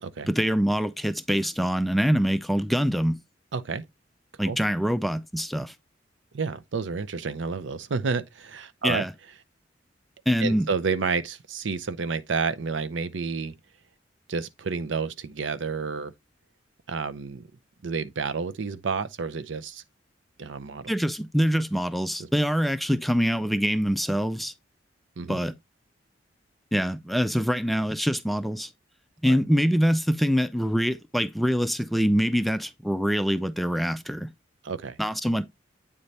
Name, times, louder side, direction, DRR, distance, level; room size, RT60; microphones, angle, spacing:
voice 1, 0.3-3.2 4.4-5.7 8.8-9.1 10.3-10.7 20.9-24.5 25.3-25.5 26.7-28.7 29.2-34.3 35.0-35.4, equal, ahead, 0.3 m, -24 dB
voice 2, 3.5-3.8 4.4-4.6 6.3-9.1 10.4-13.5 14.3-16.1 16.9-17.5 17.8-19.8 20.4-20.9 22.2-22.3 25.2-25.4 29.2-29.4 34.6-35.0, right 5 dB, 75° right, 0.6 m, -30 dB
8.7 x 3.3 x 4.0 m
head